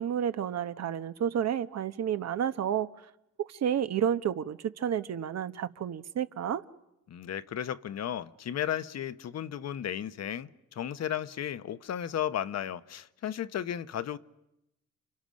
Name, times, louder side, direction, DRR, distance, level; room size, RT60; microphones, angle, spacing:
voice 1, 0.0-2.9 3.4-6.6, right 9 dB, 60° right, 1.2 m, -30 dB
voice 2, 7.1-14.2, left 10 dB, 60° left, 1.0 m, -34 dB
30.0 x 28.0 x 6.4 m
cardioid pair, 90°, 30 cm